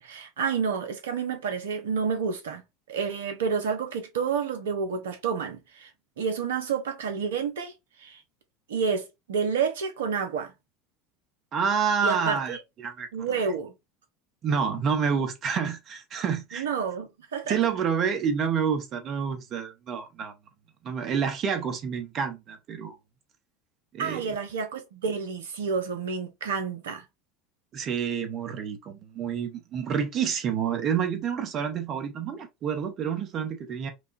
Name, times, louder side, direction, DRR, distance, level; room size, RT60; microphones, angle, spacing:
voice 1, 0.0-2.6 2.9-5.9 6.2-7.7 8.0-8.2 8.7-10.5 12.0-12.6 13.1-13.7 16.5-17.6 24.0-27.0, right 6 dB, 80° right, 0.9 m, -29 dB
voice 2, 11.5-12.6 12.8-13.1 14.4-16.7 17.5-20.3 20.8-22.9 23.9-24.3 27.7-33.9, right 7 dB, 45° right, 1.2 m, -28 dB
5.2 x 2.4 x 2.6 m
hypercardioid pair, 75°, 0 cm